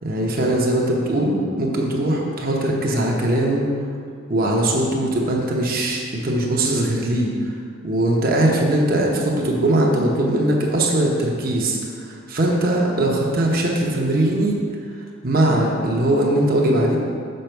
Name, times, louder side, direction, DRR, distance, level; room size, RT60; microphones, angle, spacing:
voice 1, 0.0-3.7 4.3-7.5 7.8-14.6 15.2-17.0, right 1 dB, 45° right, -1 dB, 0.9 m, -20 dB
6.6 x 5.7 x 4.5 m, 2.3 s
head